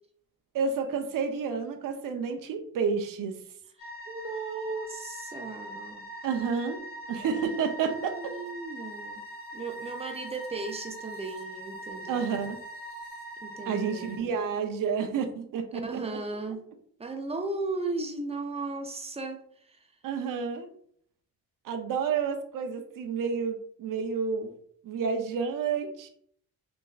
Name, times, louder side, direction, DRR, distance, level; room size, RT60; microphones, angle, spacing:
voice 1, 0.5-3.4 6.2-6.8 7.1-8.3 12.1-12.6 13.7-16.0 20.0-20.7 21.6-24.5 24.8-26.1, right 6 dB, 60° right, 6 dB, 0.6 m, -30 dB
sound 1, 3.8-14.2, right 1 dB, 25° left, 0.9 m, -42 dB
voice 2, 3.8-6.0 7.9-9.2 9.5-12.3 13.4-14.4 15.8-16.6 17.0-19.4 19.7-19.9, right 3 dB, 15° right, 5 dB, 0.5 m, -36 dB
3.4 x 3.0 x 2.3 m, 0.63 s
cardioid pair, 95°, 36 cm